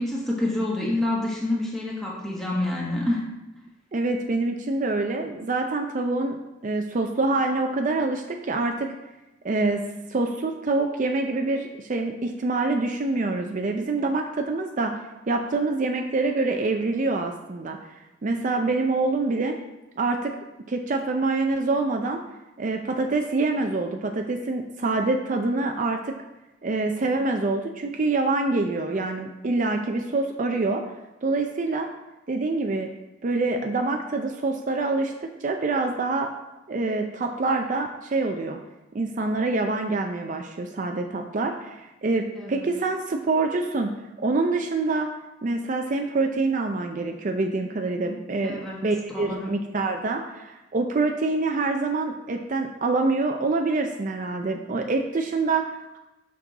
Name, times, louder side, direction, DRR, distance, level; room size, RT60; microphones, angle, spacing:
voice 1, 0.0-3.2 42.3-42.7 48.4-48.8 49.1-49.5, left 1 dB, ahead, -4 dB, 1.2 m, -27 dB
voice 2, 3.9-6.4 6.6-8.9 9.4-9.8 10.1-17.8 18.2-19.5 20.0-20.4 20.7-22.2 22.6-26.1 26.6-30.8 31.2-31.9 32.3-32.9 33.2-36.3 36.7-38.6 38.9-43.9 44.2-45.1 45.4-56.0, right 3 dB, 40° right, 3 dB, 0.5 m, -26 dB
6.2 x 5.9 x 4.0 m, 0.98 s
head